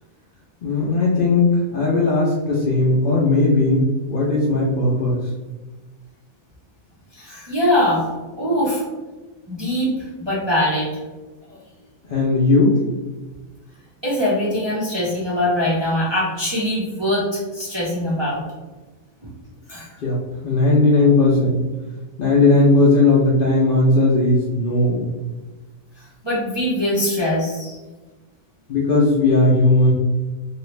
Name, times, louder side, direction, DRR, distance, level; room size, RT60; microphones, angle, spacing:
voice 1, 0.6-5.2 12.1-12.8 20.0-21.7 22.2-25.1 28.7-29.9, left 2 dB, 60° left, -5 dB, 0.6 m, -17 dB
voice 2, 7.1-8.0 8.4-8.8 9.5-10.9 11.5-11.6 14.0-18.4 19.2-19.3 19.7-19.9 26.0-27.8, left 1 dB, 35° right, -7 dB, 0.4 m, -22 dB
2.9 x 2.4 x 3.2 m, 1.2 s
omnidirectional pair, 1.4 m